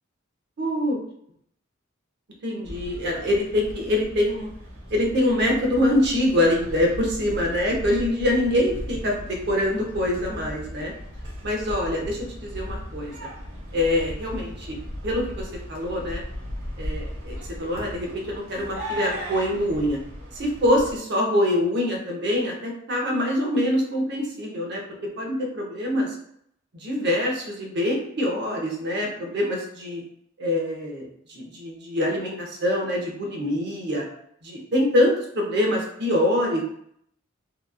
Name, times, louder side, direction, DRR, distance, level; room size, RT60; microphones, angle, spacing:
voice 1, 0.6-1.0 2.4-4.5 4.9-10.9 11.4-13.1 13.7-14.8 15.0-16.2 16.8-20.0 20.3-24.8 25.2-26.1 26.7-30.0 30.4-34.1 34.4-36.6, left 1 dB, 55° right, 0 dB, 0.7 m, -24 dB
sound 1, 2.6-21.0, equal, 85° right, 0.9 m, -37 dB
2.9 x 2.3 x 2.3 m, 0.71 s
head